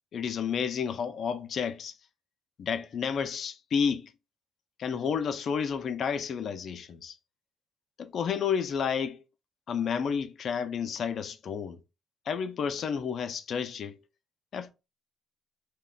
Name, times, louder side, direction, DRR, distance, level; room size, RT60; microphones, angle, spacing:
voice 1, 0.1-1.9 2.6-4.1 4.8-7.1 8.0-9.2 9.7-11.8 12.3-14.0 14.5-14.7, left 7 dB, 60° left, 0.4 m, -31 dB
2.4 x 2.2 x 3.9 m
hypercardioid pair, 50°, 0 cm